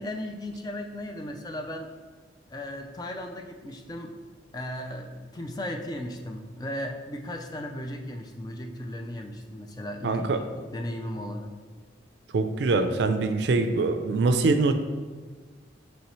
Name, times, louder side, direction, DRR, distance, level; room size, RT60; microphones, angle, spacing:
voice 1, 0.0-1.9 2.5-4.2 4.5-11.5, left 1 dB, 20° left, 3 dB, 0.3 m, -36 dB
voice 2, 10.0-10.4 12.3-14.7, right 3 dB, 65° right, 8 dB, 0.4 m, -23 dB
5.3 x 3.2 x 3.0 m, 1.4 s
head